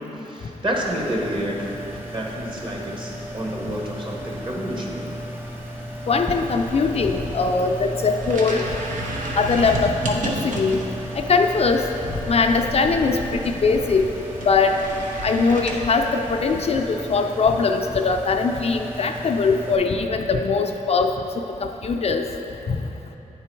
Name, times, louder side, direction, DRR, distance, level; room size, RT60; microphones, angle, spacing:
voice 1, 0.0-1.7 2.1-5.1, equal, 40° right, -2 dB, 1.2 m, -29 dB
sound 1, 0.7-19.8, equal, 15° right, 0.9 m, -35 dB
voice 2, 6.1-8.6 9.4-10.8 11.3-11.9 12.3-14.0 14.4-14.7 15.2-21.1 21.6-22.3 22.7-22.8, left 4 dB, 50° left, 4 dB, 0.4 m, -21 dB
sound 2, 6.3-16.9, right 1 dB, 80° right, 0.8 m, -33 dB
8.9 x 3.8 x 4.6 m, 3.0 s
cardioid pair, 80°, 13 cm